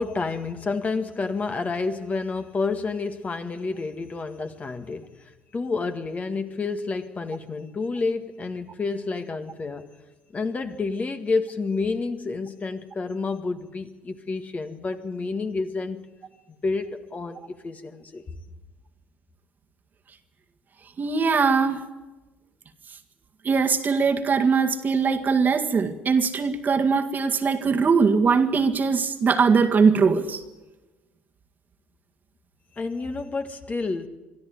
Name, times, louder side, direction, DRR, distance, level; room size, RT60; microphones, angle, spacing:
voice 1, 0.0-5.2 5.5-9.9 10.3-16.0 16.5-18.2 32.8-34.1, left 4 dB, 30° left, 1.7 m, -29 dB
voice 2, 21.0-21.8 23.4-30.4, right 5 dB, 40° right, 1.8 m, -21 dB
23.0 x 12.5 x 9.4 m
hypercardioid pair, 60°, 5 cm